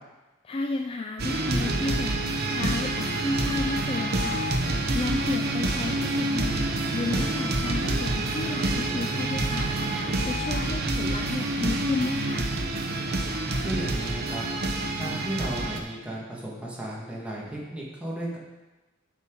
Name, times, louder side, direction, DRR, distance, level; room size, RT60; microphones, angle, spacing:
voice 1, 0.4-2.1 2.5-9.8 10.2-12.5, left 3 dB, 30° left, 4 dB, 0.3 m, -32 dB
sound 1, 1.2-15.8, right 2 dB, 50° right, 0.8 m, -27 dB
sound 2, 5.0-12.2, equal, 65° right, 1.1 m, -44 dB
voice 2, 13.6-14.5 15.0-18.4, right 1 dB, 5° right, -5 dB, 1.6 m, -34 dB
7.6 x 5.9 x 4.6 m, 1.1 s
head